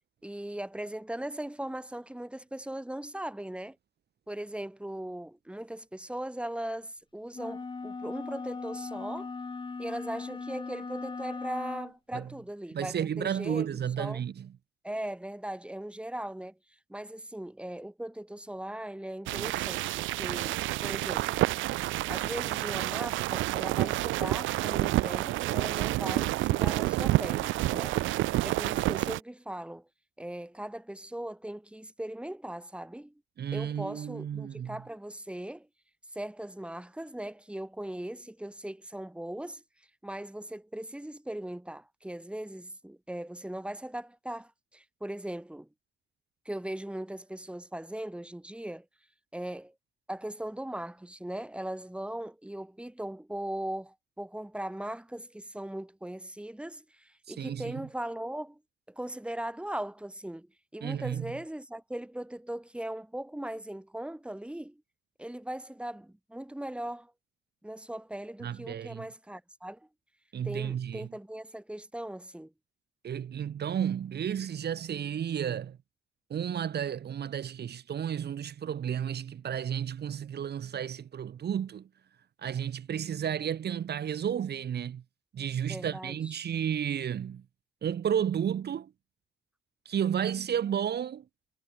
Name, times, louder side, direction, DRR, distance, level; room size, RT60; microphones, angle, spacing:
voice 1, 0.2-3.8 4.3-9.3 9.8-14.2 14.8-16.6 16.9-21.4 22.1-28.0 28.4-29.9 30.2-33.1 33.5-35.7 36.1-39.6 40.0-45.7 46.5-48.9 49.3-49.7 50.1-58.6 58.9-64.8 65.2-67.1 67.6-69.9 70.4-72.5 85.6-86.4, right 1 dB, 5° right, 3.8 m, -39 dB
sound 1, 7.3-12.0, left 4 dB, 25° left, 1.2 m, -39 dB
voice 2, 12.7-14.5 33.4-34.8 57.3-57.8 60.8-61.3 68.4-69.1 70.3-71.1 73.0-75.8 76.3-81.9 82.4-85.0 85.3-87.4 87.8-88.9 89.9-91.2, right 9 dB, 55° right, 2.3 m, -32 dB
sound 2, 19.3-29.2, right 17 dB, 75° right, 0.4 m, -29 dB
cardioid pair, 90°, 20 cm